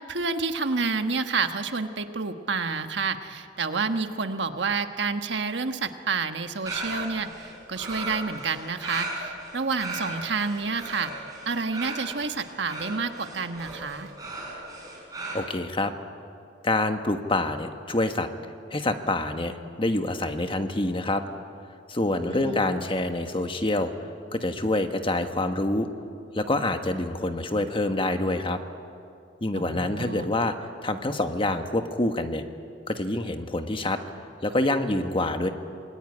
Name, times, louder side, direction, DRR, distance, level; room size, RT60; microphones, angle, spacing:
voice 1, 0.1-14.1 22.3-22.9 29.5-30.3, right 4 dB, 65° right, 7 dB, 1.4 m, -29 dB
sound 1, 6.7-15.3, right 2 dB, 20° right, 7.1 m, -36 dB
voice 2, 15.3-15.9 16.6-18.3 18.7-21.2 21.9-23.9 24.3-25.9 26.3-28.6 29.4-30.5 30.8-32.4 32.9-34.0 34.4-35.5, left 2 dB, 30° left, 7 dB, 1.4 m, -26 dB
27.0 x 20.5 x 9.9 m, 2.5 s
head